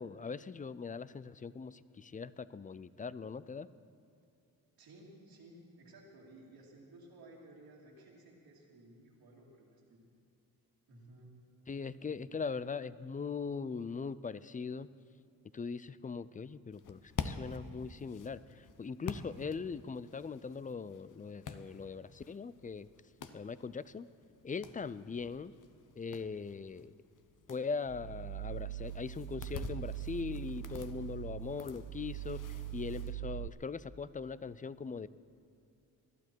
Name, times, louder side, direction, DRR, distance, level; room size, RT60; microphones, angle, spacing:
voice 1, 0.0-3.7 11.7-14.9 15.5-22.9 23.3-24.1 24.4-25.5 26.0-26.9 27.5-35.1, left 5 dB, 20° left, 17 dB, 0.4 m, -40 dB
voice 2, 4.8-10.0 10.9-11.3 24.6-24.7, right 1 dB, 85° right, -6 dB, 2.6 m, -56 dB
sound 1, 16.7-33.1, left 6 dB, 55° left, 0.9 m, -48 dB
sound 2, 27.8-33.5, right 14 dB, 65° right, 0.5 m, -42 dB
20.0 x 12.0 x 4.6 m, 2.6 s
cardioid pair, 70°, 37 cm